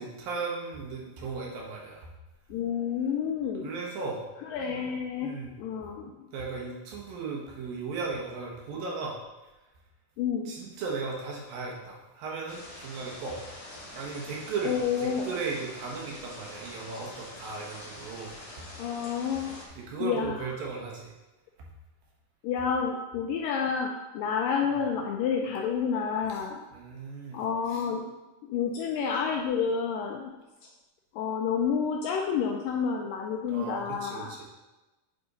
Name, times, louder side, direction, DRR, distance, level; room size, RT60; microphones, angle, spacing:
voice 1, 0.0-2.1 3.6-4.2 4.7-4.8 5.2-5.6 6.3-9.2 10.5-13.4 13.9-18.4 19.8-21.1 24.6-24.7 26.3-26.4 26.7-27.4 27.7-27.8 33.5-34.4, right 4 dB, 70° right, -2 dB, 2.9 m, -36 dB
voice 2, 2.5-3.7 4.5-6.1 10.2-10.5 14.6-15.3 18.8-19.6 20.0-20.5 22.4-26.6 27.3-28.0 28.4-30.3 31.1-34.3, left 6 dB, 85° left, 1 dB, 2.0 m, -29 dB
sound 1, 12.5-19.7, left 1 dB, 35° left, 1.7 m, -45 dB
8.9 x 6.8 x 4.0 m, 1.1 s
omnidirectional pair, 4.6 m